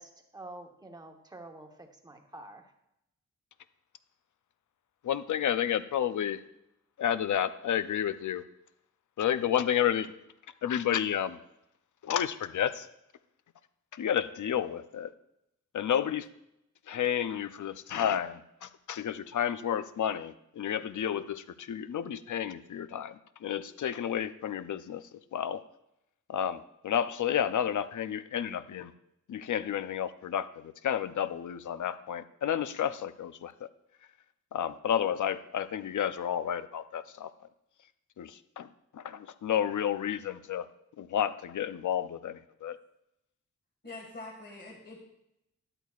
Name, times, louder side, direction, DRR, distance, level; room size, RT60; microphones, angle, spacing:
voice 1, 0.0-2.7, right 2 dB, 15° right, 3 dB, 1.1 m, -48 dB
voice 2, 5.0-6.4 7.0-8.4 9.2-10.1 10.6-11.4 12.0-12.9 13.9-15.1 15.7-16.3 16.9-25.6 26.3-28.9 29.3-33.5 34.5-37.3 38.2-38.7 38.9-40.7 41.0-42.8, left 9 dB, 75° left, 12 dB, 0.6 m, -31 dB
voice 3, 43.8-45.0, left 2 dB, 35° left, -2 dB, 1.9 m, -44 dB
13.0 x 11.0 x 2.4 m, 0.82 s
wide cardioid pair, 145°, 31 cm